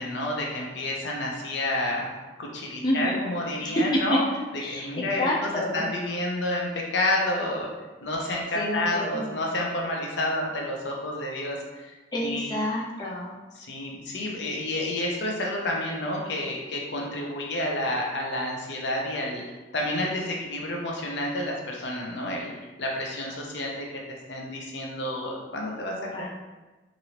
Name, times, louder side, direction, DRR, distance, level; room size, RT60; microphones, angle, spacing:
voice 1, 0.0-2.1 2.4-4.2 4.7-7.7 8.0-12.5 13.5-26.0, left 1 dB, 75° left, -1 dB, 0.6 m, -30 dB
voice 2, 2.8-3.3 3.6-4.0 4.6-5.8 8.6-9.2 12.1-13.3 26.1-26.3, left 1 dB, 25° left, -4 dB, 0.4 m, -28 dB
3.0 x 2.6 x 2.8 m, 1.2 s
head